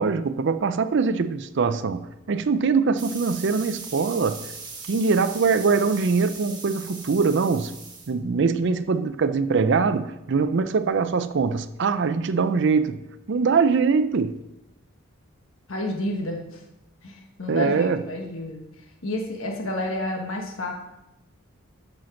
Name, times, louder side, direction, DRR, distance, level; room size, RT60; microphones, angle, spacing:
voice 1, 0.0-4.4 4.9-7.7 8.1-13.0 13.3-14.3 17.5-18.0, right 5 dB, 55° right, 0.5 m, -22 dB
sound 1, 3.0-8.1, right 4 dB, 20° right, 1.3 m, -39 dB
voice 2, 15.7-16.6 17.0-18.6 19.0-20.7, left 1 dB, 75° left, 1.3 m, -30 dB
7.8 x 5.8 x 5.8 m
head